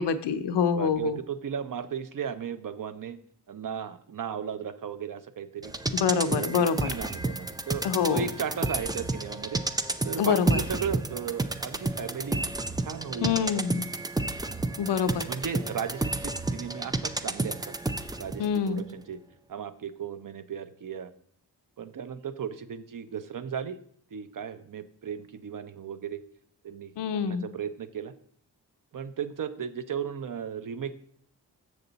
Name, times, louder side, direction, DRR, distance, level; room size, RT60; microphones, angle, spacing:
voice 1, 0.0-1.2 5.9-6.9 7.8-8.3 10.2-10.6 13.2-13.9 14.8-15.2 18.4-18.8 27.0-27.4, left 7 dB, 85° left, 10 dB, 0.7 m, -26 dB
voice 2, 0.7-3.2 3.5-5.7 6.2-9.6 10.0-12.5 12.8-13.6 15.3-17.8 18.2-19.2 19.5-21.1 21.8-23.8 24.1-26.2 26.6-28.1 28.9-30.9, right 7 dB, 50° right, 12 dB, 0.6 m, -36 dB
sound 1, 5.6-18.5 18.8-18.9, right 2 dB, 10° right, 0.3 m, -31 dB
6.9 x 6.8 x 3.9 m, 0.62 s
cardioid pair, 80°, 41 cm